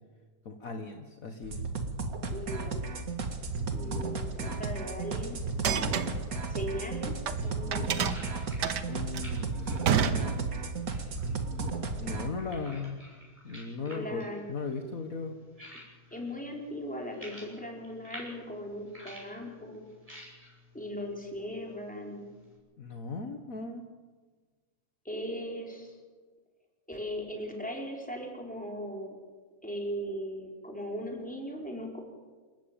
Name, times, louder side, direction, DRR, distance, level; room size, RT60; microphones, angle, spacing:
voice 1, 0.5-1.6 8.9-10.4 11.9-13.0 13.4-15.3 22.8-23.8, left 4 dB, 55° left, 5 dB, 1.8 m, -38 dB
sound 1, 1.4-12.3, right 3 dB, 55° right, 2.3 m, -34 dB
voice 2, 2.3-2.9 3.7-5.4 5.6-6.1 6.5-7.1 7.4-8.0 13.9-14.4 16.1-19.8 20.7-22.3 25.0-26.0 26.9-29.2 29.6-32.0, equal, 5° left, 0 dB, 4.4 m, -38 dB
sound 2, 5.5-7.4 7.7-10.8, right 7 dB, 75° right, 1.8 m, -30 dB
sound 3, 6.8-22.6, equal, 20° right, 6.5 m, -52 dB
27.0 x 14.5 x 9.0 m, 1.4 s
omnidirectional pair, 1.8 m